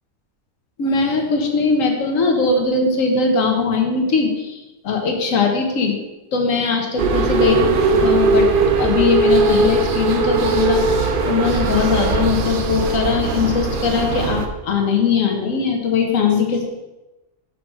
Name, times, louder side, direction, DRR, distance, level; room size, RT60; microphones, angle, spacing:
voice 1, 0.8-6.0 6.3-8.5 8.8-16.7, left 4 dB, 90° left, 3 dB, 1.4 m, -20 dB
sound 1, 7.0-14.5, right 3 dB, 50° right, 0.7 m, -19 dB
5.7 x 4.7 x 6.3 m, 1.0 s
omnidirectional pair, 1.3 m